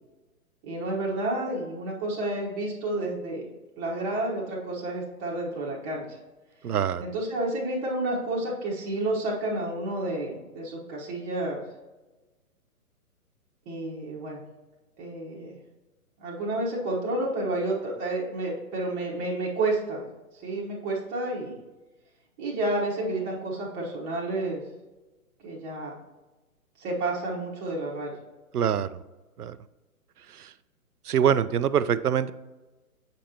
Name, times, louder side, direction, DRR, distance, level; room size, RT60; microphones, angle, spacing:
voice 1, 0.6-3.4 3.8-6.2 6.7-11.6 13.7-14.4 15.0-15.6 16.2-20.0 20.4-21.5 22.4-24.6 25.4-26.0 26.8-28.1, right 2 dB, 20° right, -5 dB, 1.0 m, -30 dB
voice 2, 6.6-7.0 28.5-29.0 29.4-29.6 30.3-30.5 31.1-32.3, right 8 dB, 85° right, 15 dB, 0.5 m, -24 dB
7.4 x 5.2 x 2.9 m, 1.1 s
figure-of-eight pair, 130°, 45 cm